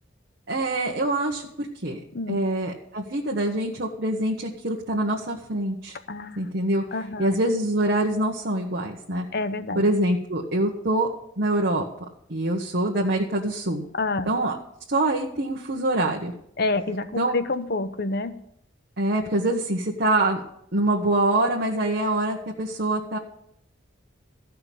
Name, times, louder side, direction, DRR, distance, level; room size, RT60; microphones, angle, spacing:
voice 1, 0.5-2.0 2.3-6.0 6.4-6.8 7.2-9.2 9.7-11.1 11.4-11.9 12.3-13.9 14.3-14.6 14.9-16.3 17.2-17.4 19.0-20.4 20.7-23.2, right 1 dB, 60° right, 0 dB, 1.4 m, -25 dB
voice 2, 2.1-2.4 6.1-6.5 6.9-7.4 9.3-9.8 13.9-14.3 16.6-18.3, left 3 dB, 55° left, 10 dB, 1.0 m, -28 dB
15.0 x 5.8 x 8.5 m, 0.74 s
head